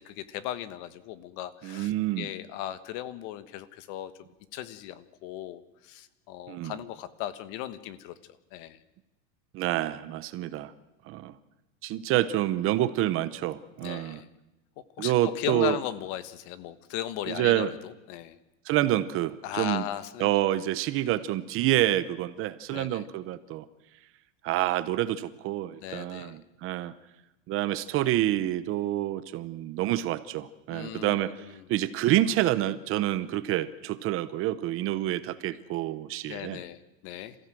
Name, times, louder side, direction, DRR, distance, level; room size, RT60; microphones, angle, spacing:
voice 1, 0.0-4.1 4.5-8.1 8.5-8.8 13.8-14.3 15.0-18.4 19.4-20.3 22.7-23.0 25.8-26.4 30.7-31.7 36.2-37.3, left 12 dB, 50° left, 14 dB, 1.4 m, -37 dB
voice 2, 1.6-2.3 6.5-6.7 9.5-10.7 11.1-11.3 11.8-14.2 15.0-15.8 17.3-17.7 18.7-19.8 20.2-23.6 24.4-26.9 27.5-36.6, right 14 dB, 35° right, 14 dB, 0.9 m, -28 dB
27.5 x 15.5 x 7.7 m, 1.0 s
supercardioid pair, 155°, 38 cm